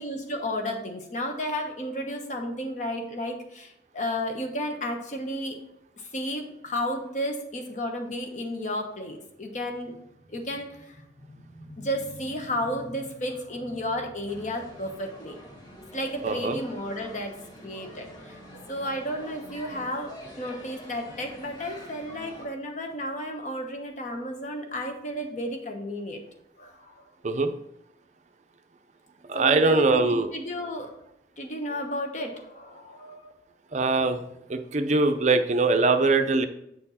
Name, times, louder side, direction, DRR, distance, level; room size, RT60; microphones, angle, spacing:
voice 1, 0.0-5.6 6.0-9.9 10.3-15.3 15.9-18.4 18.7-26.2 26.6-27.0 29.3-30.9 31.4-33.3, equal, 40° left, 3 dB, 1.2 m, -33 dB
sound 1, 14.3-22.5, left 1 dB, 25° left, 1.5 m, -46 dB
voice 2, 16.2-16.6 27.2-27.5 29.3-30.3 33.7-34.2 34.5-36.5, right 3 dB, 40° right, 7 dB, 0.6 m, -22 dB
8.0 x 4.4 x 4.2 m, 0.79 s
head